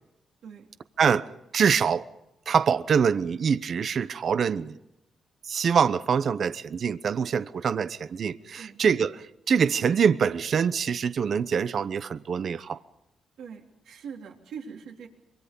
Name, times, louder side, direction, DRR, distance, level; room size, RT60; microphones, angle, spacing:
voice 1, 1.0-2.1 2.5-4.8 5.4-12.8, right 6 dB, 65° right, 0.8 m, -25 dB
voice 2, 13.4-15.1, right 6 dB, 80° right, 3.6 m, -42 dB
26.0 x 23.5 x 5.4 m
supercardioid pair, 50°, 0 cm